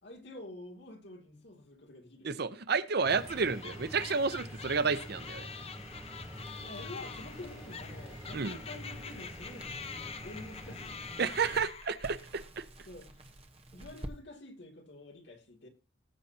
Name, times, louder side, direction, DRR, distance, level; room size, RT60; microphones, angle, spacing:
voice 1, 0.0-2.3 6.6-11.0 12.9-13.2 13.7-15.7, left 2 dB, 60° left, 2.6 m, -48 dB
voice 2, 2.2-5.5 8.3-8.6 11.2-12.6, right 5 dB, 55° right, 0.7 m, -31 dB
sound 1, 3.0-11.6, equal, 15° right, 3.3 m, -47 dB
sound 2, 3.2-12.3, left 6 dB, 30° left, 0.6 m, -46 dB
Crackle, 6.3-14.2, right 1 dB, 30° right, 1.1 m, -51 dB
19.5 x 7.6 x 2.8 m
head